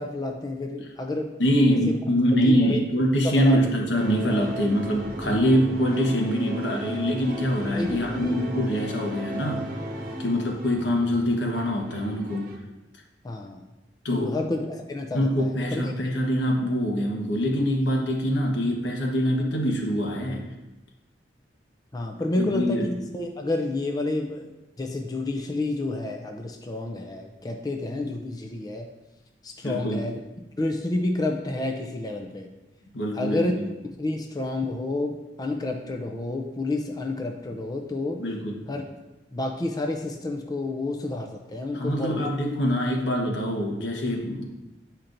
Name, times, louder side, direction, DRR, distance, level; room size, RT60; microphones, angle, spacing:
voice 1, 0.0-1.4 1.7-1.8 2.5-2.8 3.2-3.6 7.7-8.4 13.2-13.6 14.1-15.8 21.9-24.5 24.8-28.9 29.4-30.2 30.6-32.5 33.1-33.5 34.0-38.2 38.7-38.8 39.3-42.3, left 2 dB, 20° left, 3 dB, 0.5 m, -30 dB
voice 2, 1.4-9.7 10.2-12.5 14.0-14.4 15.1-20.5 22.4-22.9 29.6-30.1 32.9-33.7 38.2-38.6 41.7-44.4, equal, 80° left, 1 dB, 1.2 m, -24 dB
sound 1, 3.9-12.6, right 1 dB, 50° right, 0.9 m, -35 dB
9.9 x 4.4 x 2.6 m, 1.0 s
head